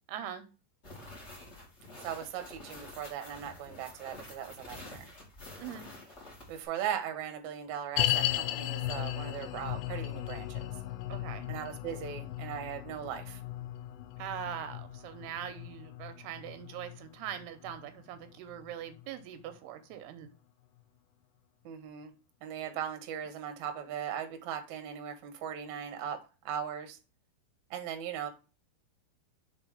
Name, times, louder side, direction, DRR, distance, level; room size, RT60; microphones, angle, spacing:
voice 1, 0.1-0.5 5.6-5.9 11.1-11.5 14.2-20.3, right 9 dB, 85° right, 9 dB, 2.8 m, -42 dB
sound 1, 0.8-6.6, left 2 dB, 25° left, 1.8 m, -49 dB
voice 2, 2.0-5.1 6.5-10.7 11.5-13.4 21.6-22.1 22.4-26.2 26.5-27.0 27.7-28.3, right 9 dB, 65° right, 6 dB, 2.0 m, -38 dB
sound 2, 8.0-19.3 19.5-19.6 20.3-20.4, left 14 dB, 85° left, 2.5 m, -36 dB
6.1 x 4.3 x 4.9 m, 0.32 s
omnidirectional pair, 4.6 m